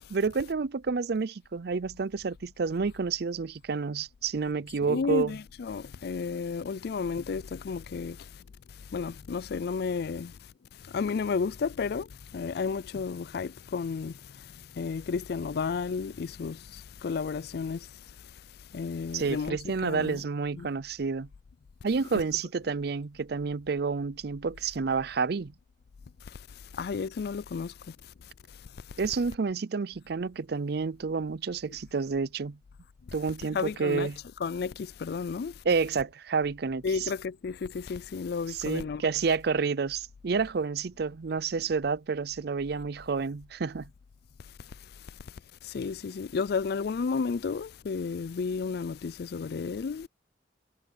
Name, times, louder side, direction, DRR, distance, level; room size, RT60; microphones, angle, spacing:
voice 1, 0.1-5.4 19.1-21.3 21.8-25.5 29.0-32.6 33.1-34.2 35.7-37.1 38.5-43.9, right 5 dB, 60° right, 0.5 m, -29 dB
voice 2, 4.8-8.3 8.9-10.4 10.8-17.9 18.7-20.2 20.5-20.7 22.1-22.2 26.3-26.4 26.7-28.0 33.5-34.1 34.4-35.5 36.8-39.1 45.6-50.1, left 5 dB, 60° left, 0.4 m, -32 dB
head